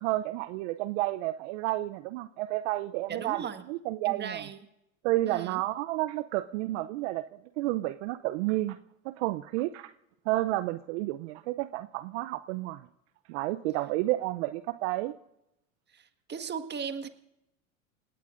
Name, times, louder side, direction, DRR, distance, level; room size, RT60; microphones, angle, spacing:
voice 1, 0.0-4.4 5.0-7.2 7.6-8.8 9.0-9.9 10.3-12.9 13.3-15.1, right 17 dB, 60° right, 11 dB, 0.7 m, -31 dB
voice 2, 3.1-3.6 4.0-4.6 5.3-5.6 15.9-16.0 16.3-17.1, right 6 dB, 25° right, 8 dB, 1.7 m, -36 dB
29.5 x 18.0 x 2.6 m, 0.86 s
hypercardioid pair, 90°, 40 cm